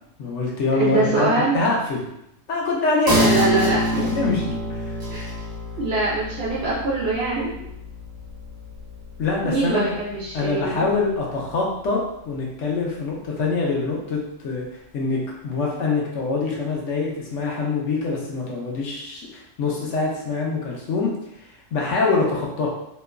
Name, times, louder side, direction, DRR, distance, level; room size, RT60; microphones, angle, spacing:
voice 1, 0.2-1.3 1.5-2.1 2.5-3.2 3.7-4.9 9.2-10.0 10.3-12.0 12.3-14.7 14.9-21.1 21.7-22.7, left 3 dB, 70° left, -3 dB, 1.0 m, -24 dB
voice 2, 0.8-1.5 3.1-4.2 5.1-5.2 5.8-7.5 9.4-10.9, right 2 dB, 60° right, -7 dB, 0.8 m, -23 dB
sound 1, 3.1-10.1 10.5-10.6, equal, 35° right, 1.0 m, -27 dB
3.0 x 2.3 x 2.2 m, 0.81 s
omnidirectional pair, 1.3 m